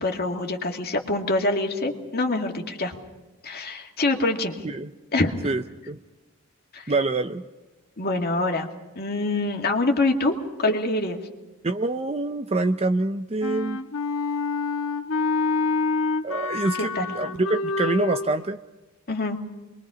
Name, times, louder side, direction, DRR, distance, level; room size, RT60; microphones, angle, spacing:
voice 1, 0.0-3.0 3.4-4.5 5.1-5.5 6.7-6.9 8.0-8.7 9.0-10.3 10.6-11.2 16.8-17.1 19.1-19.4, left 2 dB, 45° left, 3 dB, 2.3 m, -25 dB
voice 2, 5.4-6.0 6.9-7.4 11.6-13.8 16.2-18.6, right 2 dB, 30° right, 7 dB, 0.6 m, -26 dB
Wind instrument woodwind instrument, 13.4-18.3, left 4 dB, 70° left, 1.3 m, -27 dB
27.5 x 22.5 x 5.1 m, 1.1 s
head